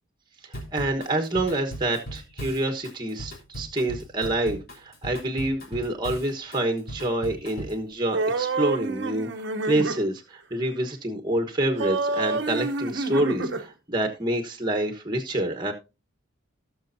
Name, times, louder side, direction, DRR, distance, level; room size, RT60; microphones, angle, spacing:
Drum kit / Drum, 0.5-7.8, equal, 45° left, 3.7 m, -38 dB
voice 1, 0.7-9.3 9.6-15.7, right 1 dB, 20° right, 5 dB, 1.2 m, -27 dB
sound 1, 8.1-10.0 11.8-13.7, right 3 dB, 55° right, 0.9 m, -28 dB
17.5 x 6.4 x 2.7 m, 0.27 s
head